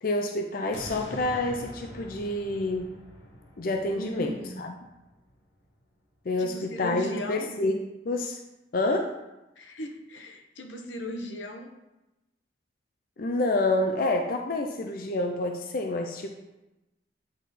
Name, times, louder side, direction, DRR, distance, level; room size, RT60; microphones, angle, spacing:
voice 1, 0.0-3.0 3.6-4.8 6.3-7.8 8.1-8.4 8.7-9.1 13.2-16.3, left 2 dB, 50° left, 3 dB, 0.5 m, -28 dB
sound 1, 0.7-5.8 6.3-6.4, equal, 70° left, 1.2 m, -45 dB
voice 2, 3.9-4.7 6.4-7.5 9.6-11.7, left 1 dB, 85° left, 4 dB, 0.9 m, -37 dB
9.2 x 3.7 x 4.1 m, 0.98 s
head